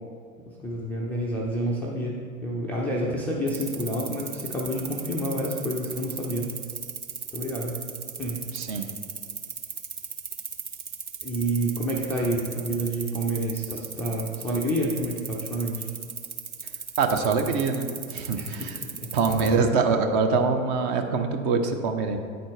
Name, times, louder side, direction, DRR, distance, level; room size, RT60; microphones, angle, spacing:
voice 1, 0.5-6.5 7.3-7.8 8.2-8.4 11.2-15.9 18.3-19.1, right 1 dB, 5° left, -5 dB, 0.4 m, -29 dB
sound 1, 3.5-19.5, right 6 dB, 85° right, 0.9 m, -35 dB
voice 2, 8.5-8.9 17.0-18.8 19.1-22.2, right 4 dB, 40° right, 5 dB, 0.8 m, -24 dB
9.3 x 4.4 x 4.6 m, 2.1 s
figure-of-eight pair, 100°, 43 cm